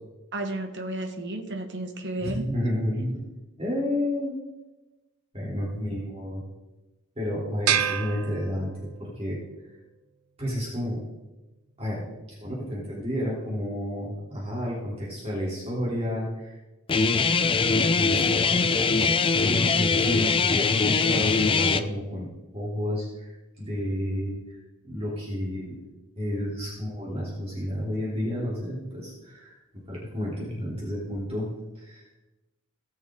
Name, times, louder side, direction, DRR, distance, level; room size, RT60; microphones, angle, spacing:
voice 1, 0.3-2.9 7.2-7.4 12.4-12.5 20.7-21.1 23.7-24.1 25.0-25.2 26.2-26.5, right 1 dB, 55° right, 6 dB, 1.3 m, -36 dB
voice 2, 2.2-3.3 3.6-4.4 5.3-6.4 7.1-9.4 10.4-11.0 11.8-12.0 12.4-16.6 17.6-19.1 19.4-22.3 22.5-25.7 26.2-29.6 29.9-32.0, left 1 dB, 30° right, -6 dB, 3.2 m, -31 dB
sound 1, 7.7-9.1, right 9 dB, 90° right, 0.7 m, -28 dB
Guitar, 16.9-21.8, left 4 dB, 25° left, 0.5 m, -22 dB
18.0 x 6.4 x 3.7 m, 1.1 s
head